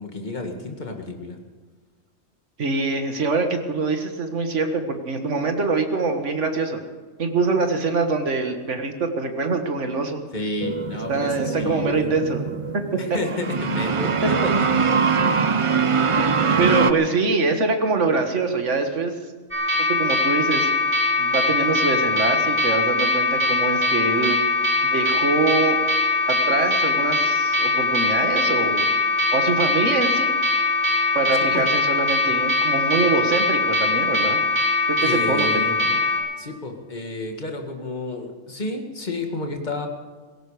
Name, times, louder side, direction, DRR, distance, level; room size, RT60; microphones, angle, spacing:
voice 1, 0.0-1.4 10.3-12.1 13.0-14.9 31.5-31.7 35.0-35.7 36.4-39.9, left 2 dB, 35° left, 3 dB, 2.0 m, -31 dB
voice 2, 2.6-6.8 7.2-10.2 10.9-12.4 12.7-13.0 14.2-14.5 16.1-19.1 19.9-20.7 21.2-24.4 24.8-25.8 26.3-28.9 29.3-30.3 31.1-34.4 34.9-36.0, right 3 dB, 65° right, 5 dB, 1.9 m, -24 dB
sound 1, 10.6-16.9, right 5 dB, 40° right, 0.5 m, -22 dB
sound 2, 19.5-36.2, left 3 dB, 10° right, 5.7 m, -21 dB
17.5 x 16.5 x 5.0 m, 1.4 s
omnidirectional pair, 1.3 m